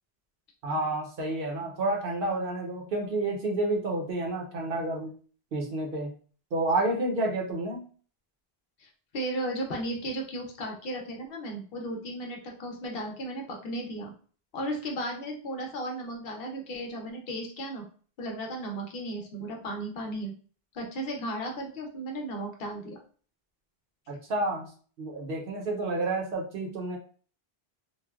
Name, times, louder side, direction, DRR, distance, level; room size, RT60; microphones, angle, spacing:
voice 1, 0.6-5.1 5.5-6.1 6.5-7.8 24.1-24.7 25.0-27.0, right 2 dB, 65° right, 0 dB, 0.8 m, -30 dB
voice 2, 8.8-14.1 14.5-17.9 18.2-20.3 20.7-23.0, right 1 dB, 65° left, 1 dB, 0.9 m, -35 dB
3.1 x 2.1 x 2.3 m, 0.41 s
omnidirectional pair, 1.0 m